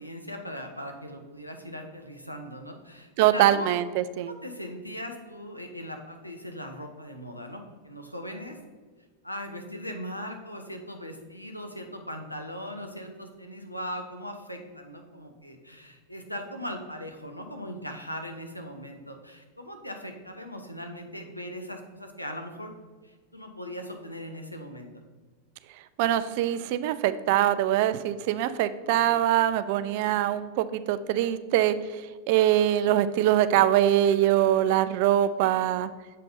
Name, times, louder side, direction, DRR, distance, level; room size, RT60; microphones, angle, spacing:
voice 1, 0.0-3.7 4.3-8.6 9.2-22.7 23.0-24.9, equal, 90° left, 4 dB, 0.7 m, -39 dB
voice 2, 3.2-4.3 26.0-31.7 32.3-35.9, right 12 dB, 50° right, 13 dB, 0.3 m, -23 dB
7.4 x 5.2 x 2.7 m, 1.4 s
figure-of-eight pair, 90°, 0 cm